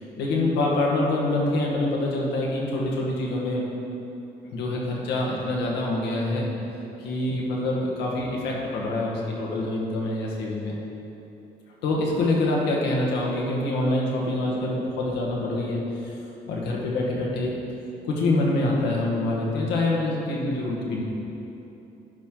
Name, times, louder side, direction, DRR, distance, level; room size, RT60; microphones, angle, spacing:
voice 1, 0.0-3.6 4.5-6.5 7.0-10.7 11.8-16.1 16.5-17.6 18.0-21.0, left 2 dB, 85° left, -3 dB, 1.5 m, -25 dB
11.5 x 4.5 x 3.8 m, 3.0 s
cardioid pair, 110°, 17 cm